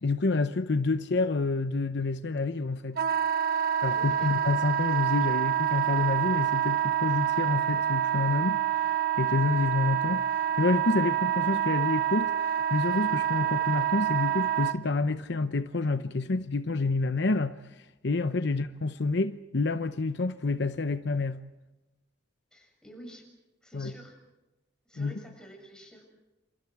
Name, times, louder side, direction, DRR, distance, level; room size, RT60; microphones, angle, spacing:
voice 1, 0.0-3.0 3.8-21.4 23.7-23.9 25.0-25.2, left 3 dB, 65° left, 0.8 m, -28 dB
Wind instrument woodwind instrument, 3.0-14.7, right 10 dB, 55° right, 1.1 m, -27 dB
voice 2, 3.9-4.3 18.5-18.6 22.5-23.3 23.6-24.2 24.9-26.2, equal, 5° left, 7.0 m, -49 dB
29.0 x 27.5 x 4.8 m
head